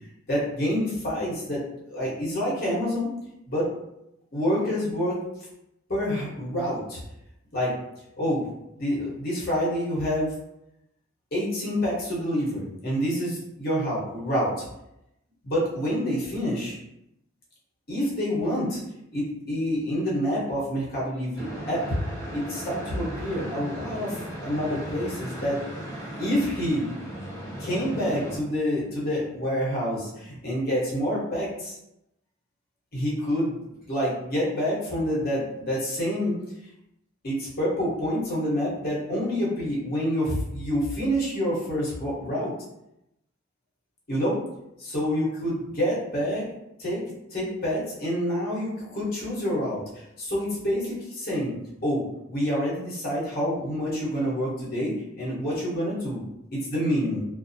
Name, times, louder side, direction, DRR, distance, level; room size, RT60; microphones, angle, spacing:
voice 1, 0.3-3.1 3.5-3.7 4.3-5.2 5.9-7.0 7.5-7.7 8.2-8.4 8.8-10.3 11.3-14.7 15.4-16.7 17.9-18.8 19.1-22.0 22.3-25.6 26.2-26.9 27.6-31.8 32.9-33.6 33.9-36.3 37.2-42.5 44.1-44.4 44.8-46.5 46.8-47.0 47.3-51.5 51.8-56.2 56.5-57.2, equal, 50° left, -6 dB, 0.9 m, -27 dB
sound 1, 21.4-28.4, equal, 15° left, 0.7 m, -36 dB
2.4 x 2.0 x 2.6 m, 0.85 s
head